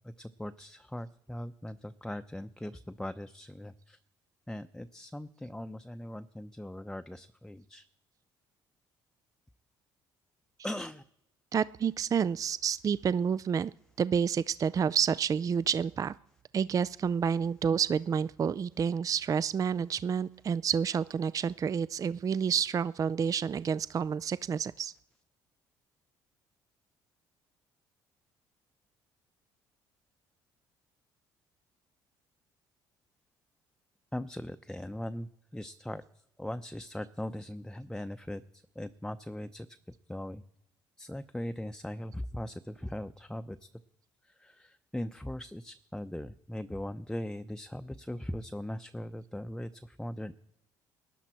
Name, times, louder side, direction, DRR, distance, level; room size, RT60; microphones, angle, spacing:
voice 1, 0.0-4.0 4.5-7.8 10.6-11.0 34.1-39.8 40.1-40.4 41.0-43.7 44.2-50.3, left 1 dB, 5° left, 9 dB, 0.7 m, -40 dB
voice 2, 11.5-13.7 14.0-16.1 16.5-24.9, right 7 dB, 35° right, 18 dB, 0.4 m, -29 dB
19.0 x 11.0 x 4.5 m, 0.81 s
hypercardioid pair, 65°, 10 cm